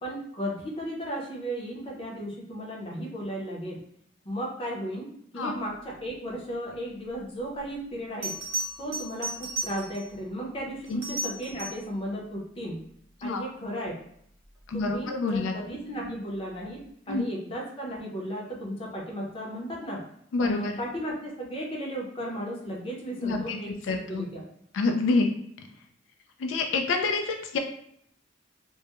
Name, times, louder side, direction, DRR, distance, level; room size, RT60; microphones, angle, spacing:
voice 1, 0.0-3.8 4.2-8.3 8.8-12.8 13.2-14.0 14.7-20.0 20.4-23.7 24.1-24.4, equal, 30° left, -2 dB, 0.6 m, -35 dB
Bell, 7.6-7.7 8.2-10.2 10.9-11.9 14.6-14.9, right 1 dB, 15° right, 0.5 m, -35 dB
voice 2, 14.7-15.5 17.1-17.2 20.3-20.8 23.2-23.6 23.9-24.3 24.7-25.3 26.4-27.6, left 3 dB, 90° left, 4 dB, 0.3 m, -27 dB
2.2 x 2.0 x 2.9 m, 0.70 s
head